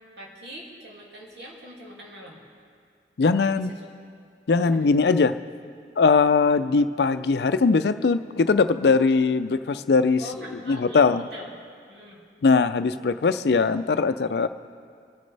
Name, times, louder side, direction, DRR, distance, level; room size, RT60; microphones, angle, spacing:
voice 1, 0.0-2.4 3.5-3.9 4.6-4.9 10.2-11.1 11.3-11.5 11.9-12.2, equal, 80° right, -3 dB, 2.4 m, -42 dB
voice 2, 3.2-3.7 4.5-5.4 6.0-10.2 10.7-11.3 12.4-14.5, left 4 dB, 70° left, 12 dB, 0.4 m, -20 dB
26.5 x 9.3 x 3.3 m, 2.3 s
head